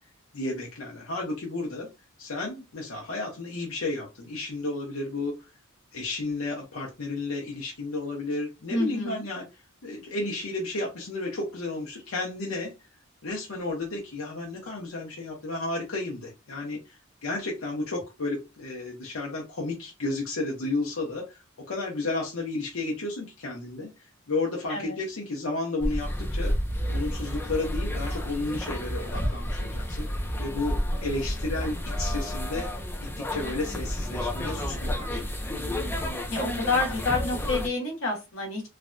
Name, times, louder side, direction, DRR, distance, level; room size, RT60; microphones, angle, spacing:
voice 1, 0.3-1.9 2.2-5.3 5.9-9.4 9.8-12.7 13.2-26.5 26.9-30.1 30.4-32.7 33.2-35.4, left 2 dB, 85° left, -1 dB, 0.8 m, -32 dB
voice 2, 8.7-9.2 24.7-25.0 36.3-38.6, left 3 dB, 70° left, 0 dB, 1.1 m, -28 dB
sound 1, 25.8-37.7, equal, 10° left, 0.5 m, -30 dB
3.2 x 2.1 x 2.5 m, 0.26 s
head